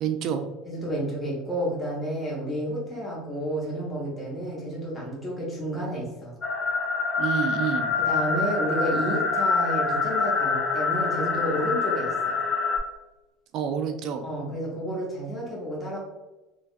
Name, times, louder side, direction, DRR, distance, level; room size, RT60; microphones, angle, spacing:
voice 1, 0.0-0.5 7.2-7.9 13.5-14.2, right 8 dB, 55° right, 6 dB, 0.3 m, -28 dB
voice 2, 0.6-6.3 8.0-12.4 14.2-16.0, equal, 15° left, -5 dB, 1.0 m, -31 dB
sound 1, 6.4-12.8, left 4 dB, 30° left, 0.6 m, -25 dB
3.3 x 2.2 x 2.5 m, 1.0 s
supercardioid pair, 100°, 0 cm